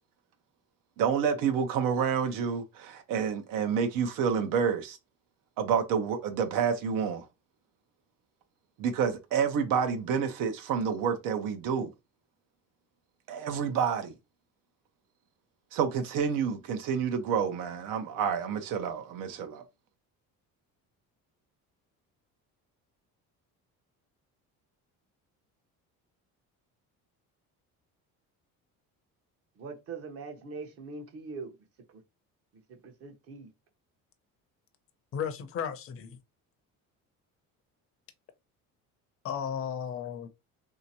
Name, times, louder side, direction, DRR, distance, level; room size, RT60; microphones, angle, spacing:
voice 1, 1.0-5.0 5.6-7.3 8.8-11.9 13.3-14.1 15.7-19.6, right 7 dB, 75° right, 0.8 m, -29 dB
voice 2, 29.6-31.5 31.9-32.0 32.7-33.5, right 4 dB, 45° right, 0.9 m, -42 dB
voice 3, 35.1-36.2 39.2-40.3, left 8 dB, 40° left, 0.6 m, -34 dB
3.3 x 2.8 x 2.8 m
cardioid pair, 150°, 34 cm